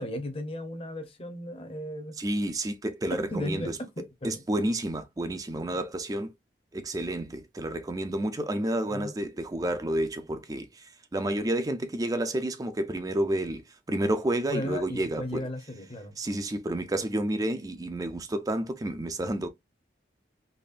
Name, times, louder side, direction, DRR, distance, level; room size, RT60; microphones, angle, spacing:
voice 1, 0.0-2.2 3.3-4.4 8.9-9.1 14.5-16.1, left 1 dB, 30° left, 0.8 m, -35 dB
voice 2, 2.2-3.8 4.2-6.3 6.7-15.5 16.2-19.5, right 1 dB, 20° right, 0.4 m, -30 dB
4.1 x 3.0 x 2.5 m
head